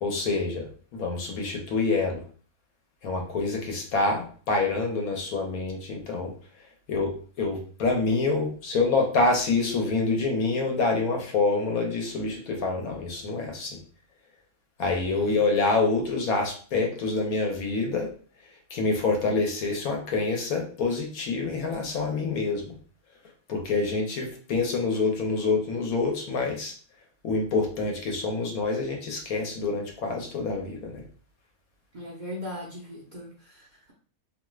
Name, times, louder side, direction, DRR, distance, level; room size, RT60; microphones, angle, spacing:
voice 1, 0.0-2.2 3.0-6.3 6.9-13.8 14.8-18.1 18.7-22.7 23.5-26.7 27.2-31.0, left 3 dB, 85° left, 2 dB, 1.2 m, -27 dB
voice 2, 31.9-33.9, left 1 dB, 50° right, -4 dB, 0.5 m, -39 dB
2.8 x 2.3 x 3.1 m, 0.43 s
omnidirectional pair, 1.5 m